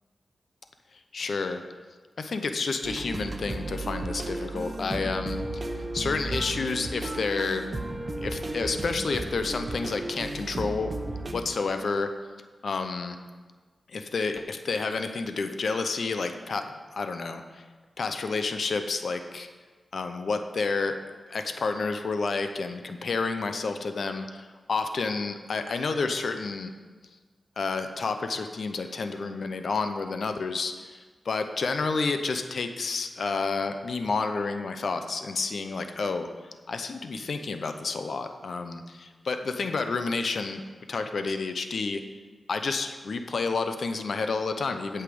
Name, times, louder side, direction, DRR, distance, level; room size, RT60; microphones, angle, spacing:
voice 1, 1.1-1.6 2.2-5.6 5.9-7.7 8.2-11.0 11.3-12.1 12.6-13.2 13.9-16.7 16.9-17.6 18.0-19.5 19.9-21.0 21.3-26.7 27.6-31.0 31.2-36.3 36.7-40.6 40.9-42.0 42.5-45.0, left 4 dB, 75° left, 7 dB, 0.7 m, -30 dB
sound 1, 2.8-11.3, right 2 dB, 40° right, 1.0 m, -34 dB
8.4 x 5.6 x 7.8 m, 1.4 s
cardioid pair, 65°, 0 cm